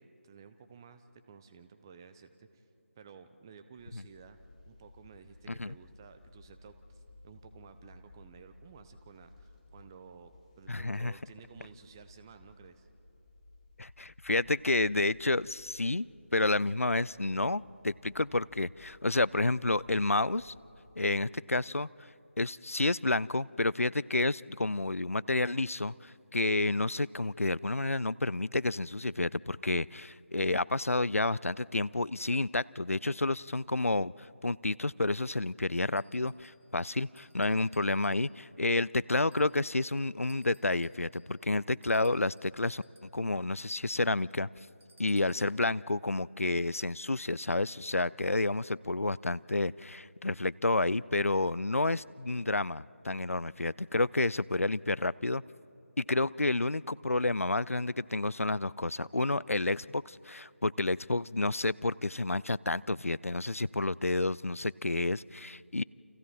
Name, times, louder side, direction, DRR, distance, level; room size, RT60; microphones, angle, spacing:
voice 1, 0.0-2.6 3.0-4.4 4.6-12.9, right 6 dB, 15° right, 10 dB, 0.7 m, -54 dB
sound 1, 3.8-21.1, left 2 dB, 30° left, 2.4 m, -58 dB
voice 2, 10.7-11.1 13.8-16.1 16.3-20.5 21.0-21.9 22.4-34.1 34.4-42.8 43.1-44.5 45.0-55.4 56.0-65.8, left 2 dB, 80° left, 22 dB, 0.4 m, -30 dB
sound 2, 36.0-36.7 37.1-38.6 39.2-39.9 40.3-43.2 44.8-45.7, right 1 dB, 65° right, 1.9 m, -64 dB
29.5 x 27.5 x 4.4 m, 3.0 s
figure-of-eight pair, 160°, 7 cm